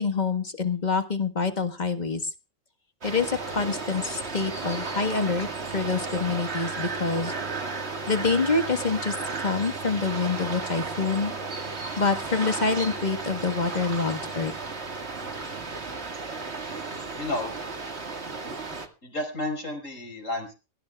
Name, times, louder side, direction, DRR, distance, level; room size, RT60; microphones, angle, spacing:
voice 1, 0.0-2.2 3.0-7.4 8.1-11.3 12.0-14.5, left 4 dB, 30° left, 8 dB, 1.6 m, -26 dB
sound 1, 3.0-18.9, right 4 dB, 50° right, 2.2 m, -34 dB
voice 2, 17.2-17.5 19.0-20.5, left 1 dB, 65° left, 5 dB, 5.3 m, -31 dB
23.5 x 15.0 x 2.4 m, 0.31 s
omnidirectional pair, 1.4 m